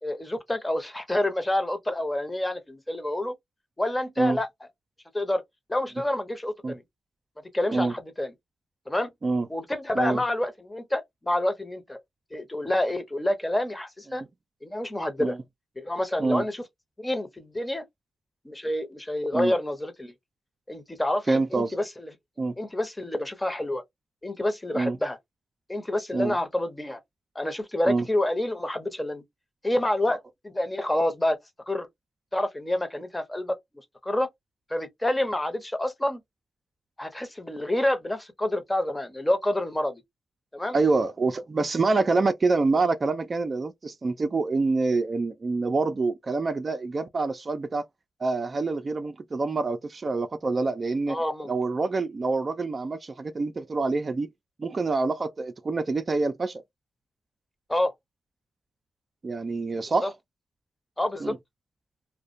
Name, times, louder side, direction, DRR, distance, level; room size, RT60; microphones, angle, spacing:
voice 1, 0.0-3.4 3.8-4.5 5.1-5.4 5.7-6.8 7.5-8.3 8.9-9.1 9.5-12.0 12.3-14.2 14.6-15.4 15.8-16.6 17.0-17.8 18.4-20.1 20.7-22.1 22.6-23.8 24.2-25.2 25.7-27.0 27.3-29.2 29.6-30.2 30.4-31.4 31.7-31.9 32.3-33.6 34.0-34.3 34.7-36.2 37.0-40.0 40.5-40.8 51.1-51.5 57.7-57.9 60.0-60.1 61.0-61.3, left 1 dB, 20° left, 0.8 m, -28 dB
voice 2, 21.3-21.7 22.4-22.5 24.7-25.0 26.1-26.3 27.9-28.1 30.1-30.2 40.7-47.8 48.2-51.2 51.5-54.3 54.6-56.6 59.2-60.1 61.2-61.4, right 3 dB, 45° right, 0.4 m, -26 dB
2.3 x 2.1 x 2.5 m
supercardioid pair, 50°, 0 cm